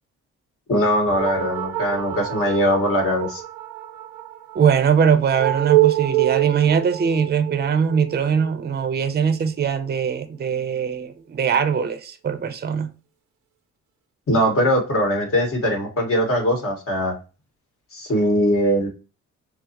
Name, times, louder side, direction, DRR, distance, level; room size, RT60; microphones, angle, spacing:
voice 1, 0.7-3.4 14.3-17.1 17.9-18.9, equal, 45° left, 1.7 m, -21 dB
sound 1, 1.1-9.9, right 16 dB, 85° right, 0.7 m, -26 dB
voice 2, 4.5-12.9, right 7 dB, 35° right, 0.6 m, -21 dB
6.1 x 2.1 x 2.9 m
cardioid pair, 90°, 30 cm